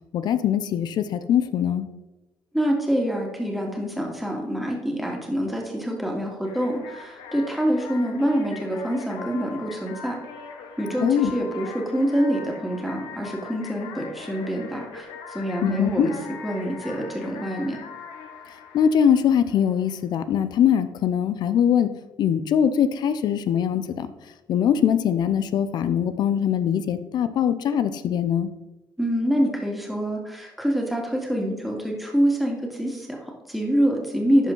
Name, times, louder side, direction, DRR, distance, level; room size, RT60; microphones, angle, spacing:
voice 1, 0.1-1.9 11.0-11.3 15.6-16.1 18.7-21.9 22.2-24.1 24.5-28.5, left 8 dB, 65° left, 12 dB, 0.6 m, -22 dB
voice 2, 2.5-10.2 10.8-16.1 16.4-17.8 29.0-34.5, equal, ahead, 0 dB, 2.2 m, -26 dB
sound 1, 6.4-19.9, left 6 dB, 90° left, 1.0 m, -41 dB
11.0 x 5.0 x 3.9 m, 1.0 s
cardioid pair, 95°, 8 cm